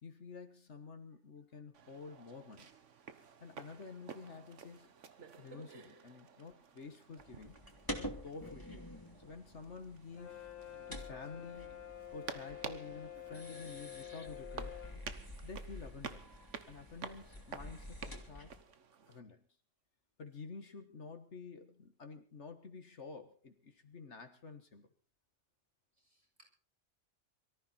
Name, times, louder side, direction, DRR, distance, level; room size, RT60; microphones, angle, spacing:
voice 1, 0.0-2.7 3.4-4.9 5.4-7.6 8.0-8.9 9.2-10.5 10.9-14.8 15.4-16.3 16.7-18.5 19.1-19.4 20.2-24.9, left 4 dB, 65° left, 8 dB, 1.7 m, -50 dB
sound 1, 1.7-19.2, right 6 dB, 70° right, 1.5 m, -52 dB
sound 2, 7.2-18.6, equal, 15° left, 2.6 m, -49 dB
Brass instrument, 10.1-15.0, left 11 dB, 85° left, 1.6 m, -49 dB
voice 2, 26.0-26.5, equal, 30° right, -2 dB, 7.8 m, -68 dB
23.5 x 14.0 x 4.3 m, 0.39 s
omnidirectional pair, 1.3 m